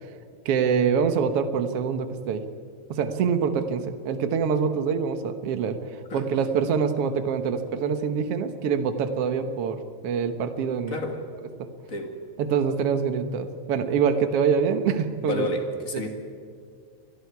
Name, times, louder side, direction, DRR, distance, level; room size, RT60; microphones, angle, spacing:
voice 1, 0.4-2.4 2.9-11.0 11.6-11.7 12.4-15.5 15.9-16.1, right 6 dB, 65° right, 8 dB, 1.5 m, -25 dB
voice 2, 10.9-11.4 11.9-12.2 15.2-16.1, left 1 dB, 25° left, 3 dB, 2.0 m, -30 dB
29.5 x 23.5 x 4.8 m, 2.2 s
omnidirectional pair, 4.6 m